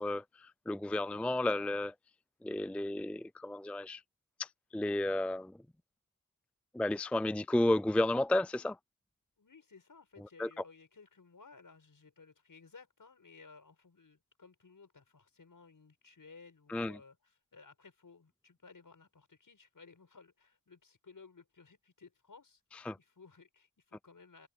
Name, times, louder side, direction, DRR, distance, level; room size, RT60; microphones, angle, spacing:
voice 1, 0.0-1.9 2.4-4.0 4.4-5.5 6.7-8.8 10.4-10.5 16.7-17.0 22.9-23.0, left 1 dB, 5° left, 0.4 m, -32 dB
voice 2, 9.4-22.6 23.0-24.5, left 4 dB, 65° left, 6.7 m, -58 dB
open air
wide cardioid pair, 65°, 35 cm